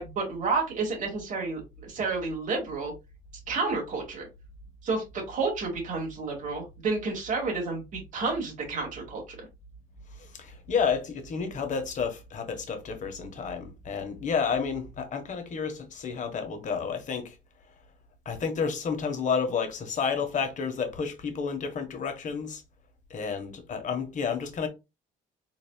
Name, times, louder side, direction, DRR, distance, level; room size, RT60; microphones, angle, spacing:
voice 1, 0.0-2.9 3.5-4.3 4.8-9.2, right 4 dB, 50° right, 2.1 m, -30 dB
voice 2, 10.2-17.4 18.2-22.6 23.1-24.7, left 6 dB, 45° left, 1.4 m, -30 dB
4.1 x 4.0 x 2.3 m
cardioid pair, 110°, 17 cm